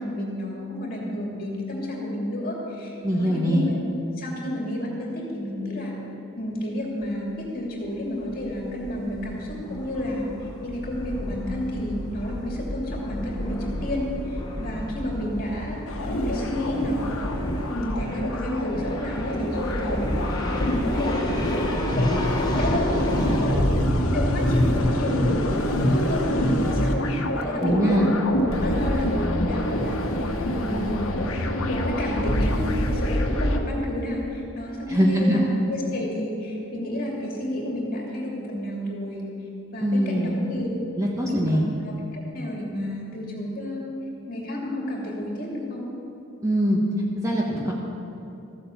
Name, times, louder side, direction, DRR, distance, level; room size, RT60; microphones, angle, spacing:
voice 1, 0.0-3.8 4.2-5.9 6.4-15.8 16.0-17.3 17.7-23.6 24.0-27.0 27.3-28.2 28.6-30.9 31.7-35.4 35.7-39.2 39.7-40.7 41.2-43.8 44.3-45.9, left 1 dB, 45° left, -2 dB, 2.7 m, -30 dB
voice 2, 3.0-3.7 27.6-28.1 34.9-35.4 39.8-40.4 41.0-41.6 46.4-46.8 47.2-47.7, equal, 15° right, -3 dB, 1.3 m, -22 dB
sound 1, 7.0-7.1 7.4-7.5 7.8-23.5, left 1 dB, 20° left, 1.3 m, -32 dB
sound 2, 15.9-33.6, left 1 dB, 85° left, 1.2 m, -25 dB
14.5 x 8.7 x 7.1 m, 2.8 s
head